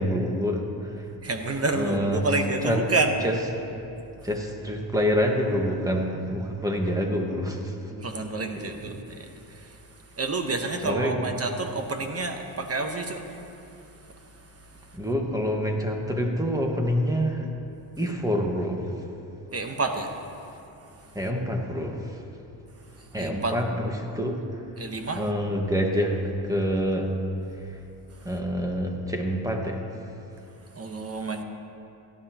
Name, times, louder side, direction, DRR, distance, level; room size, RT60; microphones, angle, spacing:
voice 1, 0.0-1.1 1.7-2.3 2.6-2.8 3.2-3.3 4.2-7.9 10.8-11.3 14.9-17.5 18.0-19.0 21.1-22.2 23.1-24.4 25.1-27.1 27.5-27.8 28.2-29.8, equal, 5° right, 1 dB, 1.6 m, -27 dB
voice 2, 1.2-3.2 7.9-9.8 10.2-13.4 14.1-14.9 19.5-20.2 23.2-23.6 24.8-25.2 30.7-31.4, right 3 dB, 30° right, 5 dB, 1.2 m, -29 dB
17.0 x 12.0 x 3.0 m, 2.8 s
cardioid pair, 75°, 50 cm